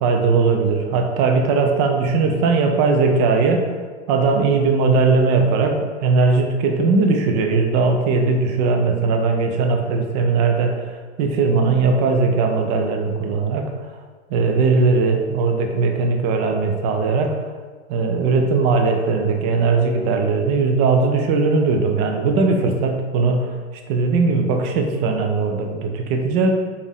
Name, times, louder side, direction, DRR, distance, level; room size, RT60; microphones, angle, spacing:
voice 1, 0.0-3.7 4.1-5.8 6.0-10.7 11.2-13.7 14.3-17.3 17.9-23.5 23.9-26.5, right 4 dB, 35° right, 3 dB, 0.5 m, -19 dB
5.0 x 2.6 x 3.4 m, 1.4 s
hypercardioid pair, 120°, 37 cm